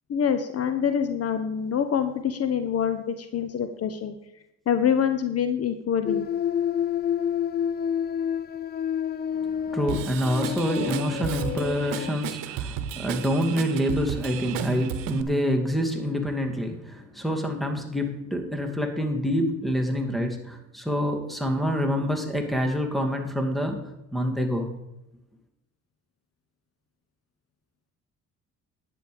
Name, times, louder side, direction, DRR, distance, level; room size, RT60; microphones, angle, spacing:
voice 1, 0.1-4.1 4.7-6.3, left 8 dB, 50° left, 9 dB, 1.1 m, -25 dB
sound 1, 6.1-12.2, left 9 dB, 30° left, 0.4 m, -29 dB
voice 2, 9.3-24.7, equal, ahead, 4 dB, 2.4 m, -27 dB
Drum kit / Drum, 9.9-15.2, right 9 dB, 85° right, 1.0 m, -33 dB
11.0 x 9.1 x 5.1 m, 0.90 s
cardioid pair, 90°, 32 cm